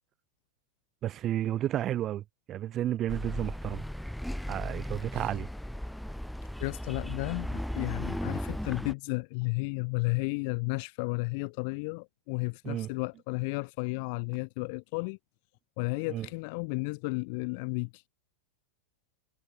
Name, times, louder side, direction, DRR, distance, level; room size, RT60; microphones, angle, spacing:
voice 1, 1.0-3.8 4.5-5.5 12.6-12.9 16.1-16.3, right 12 dB, 30° right, 1.5 m, -32 dB
sound 1, 3.1-8.9, equal, ahead, 1.3 m, -36 dB
voice 2, 6.6-15.2 15.8-18.0, left 31 dB, 45° left, 0.7 m, -33 dB
figure-of-eight pair, 90°, 0 cm